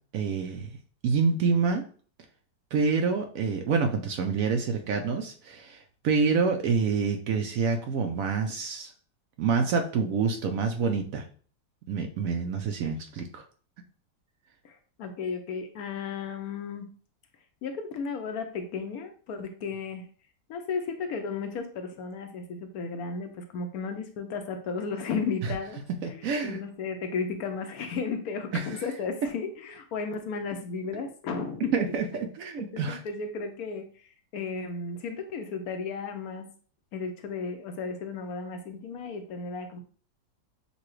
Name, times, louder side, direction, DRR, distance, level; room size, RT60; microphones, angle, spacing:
voice 1, 0.1-0.7 1.0-1.8 2.7-8.9 9.4-11.2 11.9-13.4 25.4-25.5 26.0-26.6 28.5-28.8 30.9-31.0 31.7-33.0, right 5 dB, 70° right, 5 dB, 0.8 m, -27 dB
voice 2, 14.6-16.9 17.6-20.1 20.5-25.8 26.1-31.9 32.6-33.9 34.3-36.5 36.9-39.8, left 5 dB, 70° left, 6 dB, 1.0 m, -34 dB
6.7 x 2.3 x 3.1 m, 0.43 s
omnidirectional pair, 1.8 m